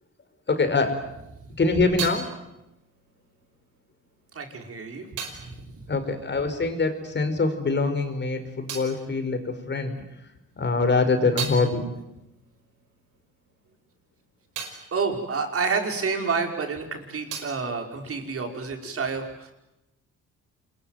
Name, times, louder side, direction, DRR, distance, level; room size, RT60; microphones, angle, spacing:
voice 1, 0.5-1.1 1.6-2.3 5.9-10.3 10.6-11.9, left 3 dB, 35° left, 7 dB, 5.1 m, -24 dB
sound 1, 1.3-7.2 7.4-10.1 10.5-16.6 16.8-18.8, right 7 dB, 85° right, 5.5 m, -41 dB
voice 2, 4.3-5.1 5.4-5.8 14.9-19.5, right 4 dB, 50° right, 3 dB, 5.5 m, -29 dB
26.5 x 22.5 x 9.3 m, 0.89 s
cardioid pair, 90°, 30 cm